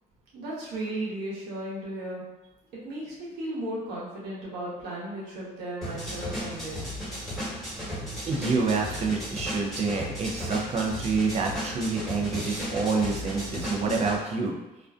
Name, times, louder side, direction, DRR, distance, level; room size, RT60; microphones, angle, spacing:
voice 1, 0.3-2.2 2.8-6.8, right 1 dB, 90° right, -6 dB, 1.0 m, -35 dB
sound 1, 5.8-14.2, equal, ahead, 1.2 m, -35 dB
voice 2, 8.2-14.5, right 4 dB, 40° right, 0 dB, 0.5 m, -27 dB
2.5 x 2.2 x 2.4 m, 1.0 s
cardioid pair, 110°, 17 cm